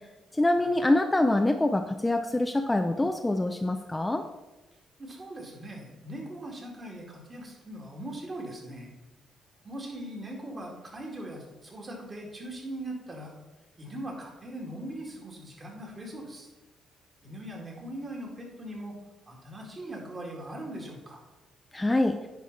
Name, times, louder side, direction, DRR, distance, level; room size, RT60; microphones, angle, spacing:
voice 1, 0.3-4.2 21.7-22.2, left 1 dB, 15° left, 6 dB, 0.5 m, -25 dB
voice 2, 5.0-8.9 9.6-13.3 13.8-16.5 17.2-18.9 19.3-21.2, right 1 dB, 30° right, -1 dB, 2.4 m, -40 dB
10.0 x 4.7 x 4.1 m, 1.1 s
cardioid pair, 90°, 0 cm